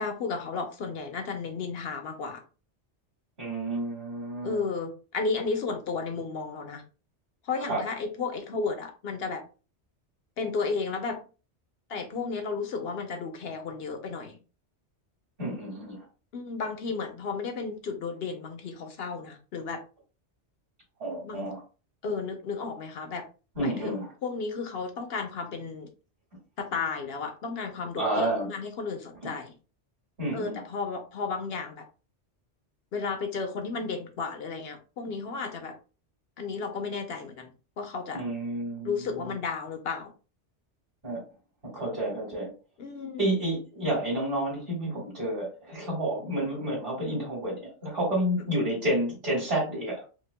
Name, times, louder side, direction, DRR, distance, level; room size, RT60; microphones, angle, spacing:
voice 1, 0.0-2.4 4.4-6.8 7.4-9.4 10.4-11.2 11.9-14.4 16.3-19.8 21.2-21.5 22.0-23.3 23.6-25.9 26.6-29.5 30.3-31.8 32.9-35.7 36.4-37.5 37.8-38.2 38.8-40.1 42.8-43.3, left 4 dB, 60° left, 5 dB, 0.9 m, -33 dB
voice 2, 3.4-4.6 7.7-7.8 15.4-16.0 21.0-21.6 23.6-24.1 27.9-28.5 29.2-29.3 30.2-30.6 38.1-39.3 41.0-41.2 41.7-42.5 43.2-50.0, right 1 dB, 55° right, -5 dB, 2.1 m, -30 dB
4.9 x 2.2 x 2.2 m, 0.34 s
omnidirectional pair, 1.2 m